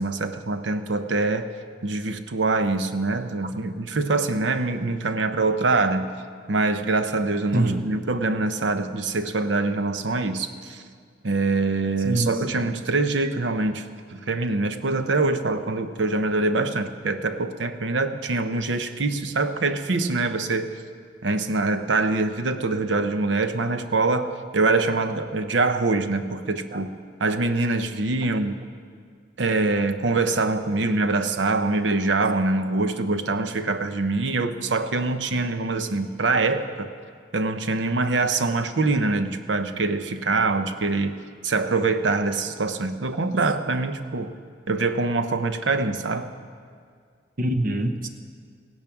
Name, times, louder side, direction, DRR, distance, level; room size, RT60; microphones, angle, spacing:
voice 1, 0.0-1.5 1.8-6.2 6.5-10.8 11.2-20.7 21.2-28.6 29.4-36.9 37.3-44.3 44.7-46.3, right 3 dB, 80° right, 9 dB, 0.8 m, -24 dB
voice 2, 7.5-7.9 12.0-12.6 26.7-26.9 30.9-31.0 47.4-48.1, right 1 dB, 50° right, 7 dB, 1.0 m, -25 dB
16.0 x 10.5 x 6.0 m, 2.1 s
head